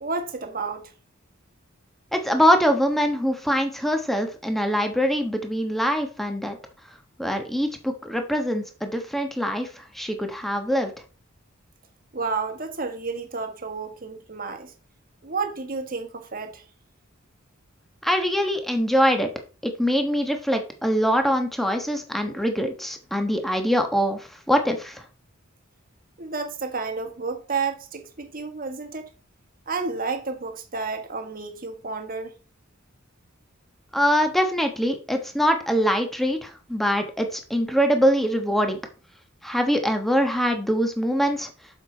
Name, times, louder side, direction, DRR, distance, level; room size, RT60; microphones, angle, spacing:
voice 1, 0.0-0.9 12.1-14.7 15.2-16.6 26.2-29.1 29.7-32.3, right 4 dB, 45° right, 1.5 m, -31 dB
voice 2, 2.1-6.6 7.2-10.9 18.0-19.3 19.6-25.0 33.9-38.8 39.4-41.5, equal, ahead, 1.2 m, -23 dB
7.3 x 6.7 x 4.4 m
head